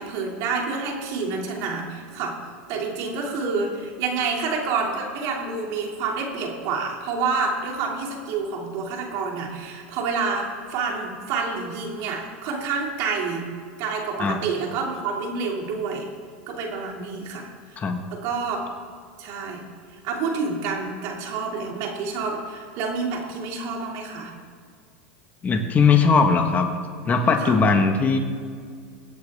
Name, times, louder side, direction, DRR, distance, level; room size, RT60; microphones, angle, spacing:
voice 1, 0.0-2.3 2.7-13.5 13.8-16.0 16.5-17.5 18.1-18.6 19.2-19.6 20.0-24.3 27.4-27.6, right 4 dB, 55° right, 0 dB, 2.9 m, -28 dB
voice 2, 25.4-26.7 27.0-28.2, left 5 dB, 25° left, 5 dB, 1.5 m, -19 dB
23.0 x 8.2 x 3.7 m, 2.2 s
hypercardioid pair, 115°, 7 cm